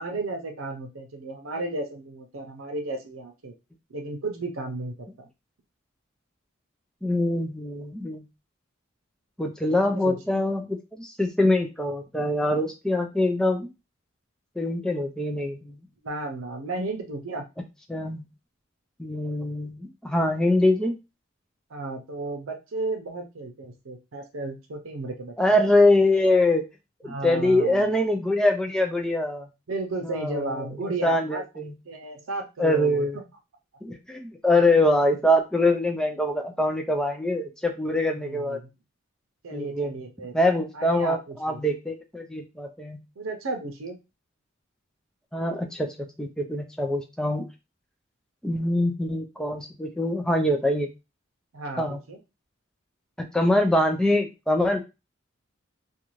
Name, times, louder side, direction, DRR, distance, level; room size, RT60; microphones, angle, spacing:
voice 1, 0.0-3.5 3.9-5.3 9.7-10.4 16.0-17.5 21.7-25.3 27.0-27.9 29.7-31.4 31.9-33.2 38.2-38.7 39.4-40.3 40.7-41.6 43.2-44.0 51.5-52.2, right 2 dB, 85° right, 3 dB, 0.6 m, -34 dB
voice 2, 7.0-8.2 9.4-13.7 14.6-15.8 17.9-18.2 19.0-20.9 25.4-26.6 27.0-29.5 30.0-30.7 31.0-31.7 32.6-33.2 33.8-38.6 39.5-39.9 40.3-43.0 45.3-45.9 46.2-47.5 48.4-50.9 51.8-52.0 53.2-54.8, left 1 dB, 5° left, 3 dB, 0.3 m, -24 dB
2.5 x 2.3 x 3.0 m, 0.26 s
head